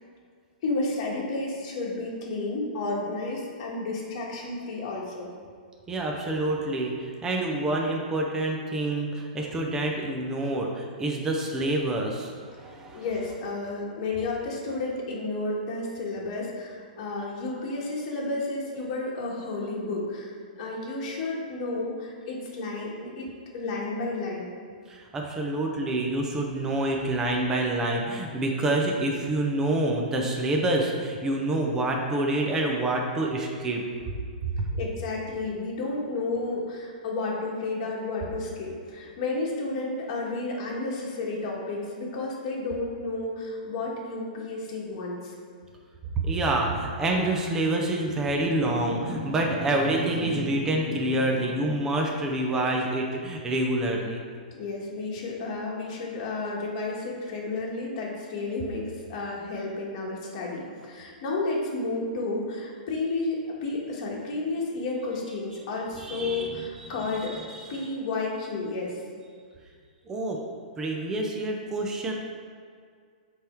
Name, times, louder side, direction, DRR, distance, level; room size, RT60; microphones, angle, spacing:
voice 1, 0.6-5.3 12.9-24.5 34.7-45.3 54.5-69.0, left 3 dB, 35° left, -4 dB, 1.5 m, -32 dB
voice 2, 5.9-13.0 24.9-33.8 34.6-34.7 46.2-54.2 66.0-66.5 66.8-67.8 70.1-70.4 70.8-72.1, right 1 dB, 10° right, 0 dB, 0.6 m, -27 dB
7.8 x 3.5 x 4.5 m, 2.1 s
hypercardioid pair, 165°, 5 cm